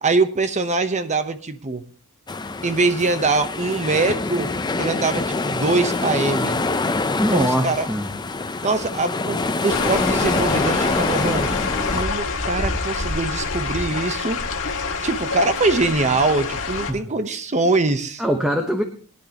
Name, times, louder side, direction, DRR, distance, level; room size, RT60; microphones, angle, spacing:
voice 1, 0.0-1.8 2.6-4.5 4.8-6.6 7.3-7.9 8.6-11.5 11.8-14.4 15.0-18.2, right 3 dB, 35° right, 10 dB, 0.9 m, -23 dB
sound 1, 2.3-12.0, left 3 dB, 20° left, 0.5 m, -25 dB
voice 2, 7.2-8.1 16.9-17.1 18.2-18.8, equal, 5° right, 4 dB, 1.0 m, -22 dB
sound 2, 9.7-16.9, left 4 dB, 65° left, 1.8 m, -26 dB
20.5 x 10.5 x 2.9 m, 0.43 s
head